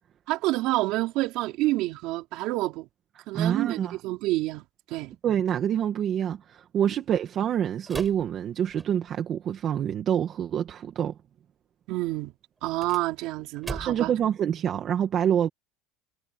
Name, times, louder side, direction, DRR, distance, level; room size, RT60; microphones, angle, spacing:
voice 1, 0.3-2.9 3.3-5.1 11.9-12.3 12.6-14.1, right 19 dB, 60° right, 4.9 m, -28 dB
voice 2, 3.2-4.0 5.2-11.2 13.8-15.5, right 9 dB, 40° right, 2.1 m, -26 dB
sound 1, 7.8-9.3 12.6-14.2, right 3 dB, 15° right, 5.9 m, -40 dB
cardioid pair, 140°, 0 cm